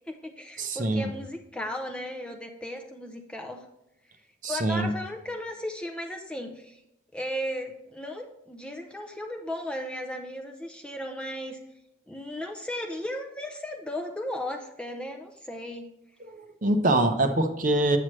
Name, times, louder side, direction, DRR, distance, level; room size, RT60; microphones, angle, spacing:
voice 1, 0.1-3.6 4.5-6.8 7.1-11.6 12.1-15.9, left 1 dB, 5° left, 3 dB, 0.4 m, -35 dB
voice 2, 0.6-1.1 4.4-4.9 16.2-18.0, right 2 dB, 40° right, 6 dB, 0.7 m, -24 dB
7.9 x 7.4 x 3.1 m, 0.85 s
head